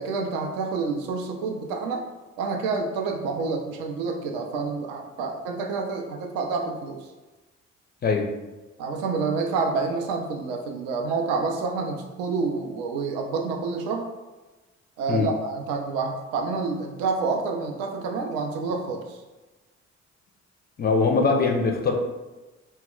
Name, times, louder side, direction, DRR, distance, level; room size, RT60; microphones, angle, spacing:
voice 1, 0.0-2.0 2.4-7.0 8.8-14.1 15.0-19.2, right 4 dB, 70° right, 3 dB, 0.5 m, -28 dB
voice 2, 20.8-21.9, left 4 dB, 25° left, 3 dB, 0.4 m, -22 dB
2.1 x 2.1 x 3.6 m, 1.2 s
figure-of-eight pair, 45°, 37 cm